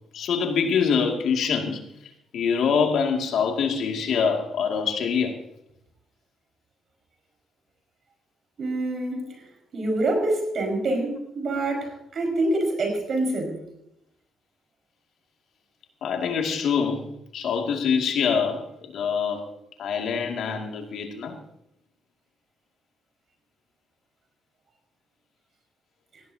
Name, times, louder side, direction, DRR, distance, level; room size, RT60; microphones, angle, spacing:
voice 1, 0.1-1.8 2.3-5.4 16.0-17.0 17.3-19.4 19.8-21.4, left 6 dB, 70° left, 3 dB, 2.3 m, -25 dB
voice 2, 8.6-9.3 9.7-13.6, right 2 dB, 55° right, 3 dB, 5.2 m, -26 dB
17.5 x 17.0 x 2.8 m, 0.78 s
cardioid pair, 90°, 0 cm